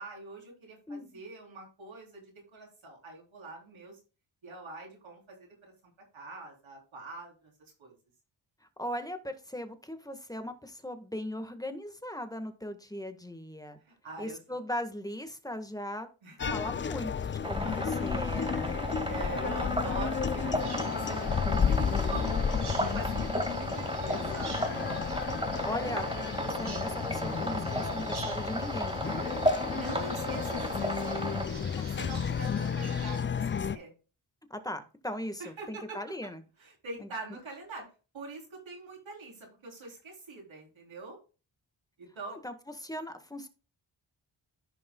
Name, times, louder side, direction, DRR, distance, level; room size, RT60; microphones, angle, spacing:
voice 1, 0.0-4.0 4.4-7.5 7.8-8.0 13.8-14.4 16.2-16.6 18.4-24.9 29.7-33.9 35.4-36.0 36.6-37.9 38.1-41.2 42.0-42.4, right 2 dB, 80° right, -1 dB, 3.7 m, -44 dB
voice 2, 8.6-13.8 14.2-16.1 16.5-18.9 25.6-26.1 26.4-29.3 31.8-31.9 34.5-36.4 37.0-37.1 42.3-42.5 42.8-43.5, left 1 dB, 10° left, 7 dB, 1.5 m, -39 dB
sound 1, 16.4-33.8, left 7 dB, 30° left, 0.4 m, -32 dB
sound 2, 17.4-31.4, right 1 dB, 10° right, 1.9 m, -34 dB
Bird vocalization bird call bird song, 20.6-33.2, right 4 dB, 55° right, 2.2 m, -48 dB
14.5 x 5.4 x 2.3 m, 0.34 s
cardioid pair, 55°, 46 cm